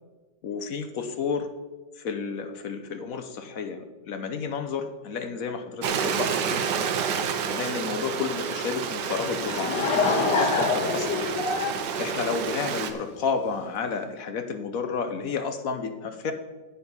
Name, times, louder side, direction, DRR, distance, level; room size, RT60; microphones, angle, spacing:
voice 1, 0.4-1.5 2.0-6.7 7.5-9.7 10.1-11.3 12.0-16.3, left 5 dB, 60° left, 8 dB, 1.1 m, -31 dB
Stream, 5.8-12.9, right 6 dB, 80° right, 1.5 m, -29 dB
Laughter / Crowd, 9.2-12.9, left 4 dB, 80° left, 1.9 m, -26 dB
9.7 x 8.3 x 5.4 m, 1.3 s
omnidirectional pair, 1.9 m